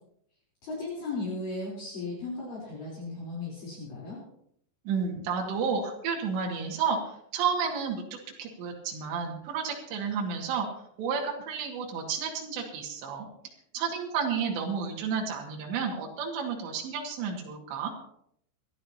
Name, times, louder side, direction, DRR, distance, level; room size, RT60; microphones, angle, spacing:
voice 1, 0.6-4.2, left 3 dB, 50° left, -5 dB, 5.3 m, -36 dB
voice 2, 4.9-7.0 7.3-8.0 8.4-10.7 11.0-13.3 13.7-17.9, right 6 dB, 70° right, -1 dB, 4.3 m, -31 dB
27.0 x 12.0 x 2.9 m, 0.71 s
omnidirectional pair, 5.4 m